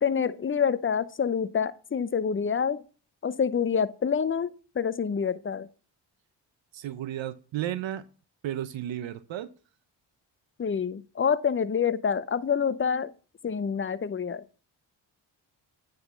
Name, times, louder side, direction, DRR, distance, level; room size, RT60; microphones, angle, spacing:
voice 1, 0.0-2.8 3.2-5.7 10.6-13.1 13.4-14.4, left 6 dB, 25° left, 0.6 m, -27 dB
voice 2, 6.7-8.0 8.4-9.5, right 12 dB, 70° right, 0.7 m, -33 dB
9.4 x 4.0 x 6.8 m
supercardioid pair, 55°, 48 cm